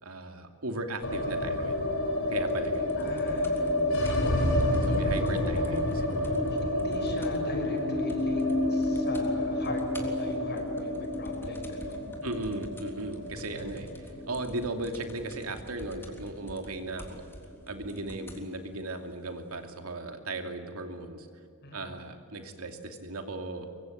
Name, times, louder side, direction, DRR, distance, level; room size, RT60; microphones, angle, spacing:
voice 1, 0.0-1.8 2.3-3.0 4.1-4.5 4.9-6.4 12.2-17.2 17.7-21.3 21.7-23.7, right 2 dB, 85° right, 5 dB, 2.8 m, -37 dB
sound 1, 1.0-17.1 17.4-17.5 17.8-18.5, left 1 dB, 65° left, 5.3 m, -29 dB
sound 2, 2.5-7.5 7.8-7.9 8.1-8.6 8.8-9.3 9.6-18.5 19.3-19.4, equal, 10° left, 3.5 m, -48 dB
voice 2, 3.0-4.9 5.2-5.8 6.5-12.1 21.6-22.0, left 2 dB, 50° left, 4 dB, 6.1 m, -40 dB
24.0 x 23.5 x 9.3 m, 2.4 s
head